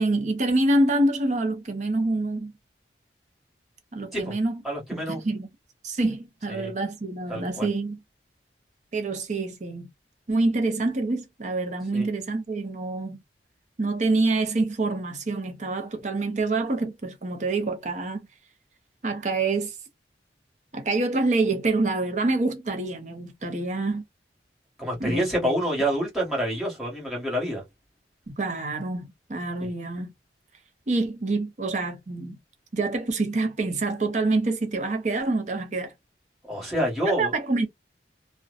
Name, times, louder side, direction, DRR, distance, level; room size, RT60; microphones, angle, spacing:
voice 1, 0.0-2.5 3.9-4.6 4.9-5.5 5.8-8.0 8.9-9.9 10.3-13.2 13.8-18.2 19.0-19.8 20.7-24.0 25.0-25.5 28.4-30.1 30.9-32.4 32.7-35.9 37.1-37.7, right 2 dB, 40° right, 0.6 m, -26 dB
voice 2, 4.6-5.2 6.5-6.7 7.3-7.7 11.9-12.1 24.8-27.6 29.6-29.7 36.4-37.3, equal, ahead, 1.3 m, -27 dB
2.6 x 2.1 x 2.4 m
head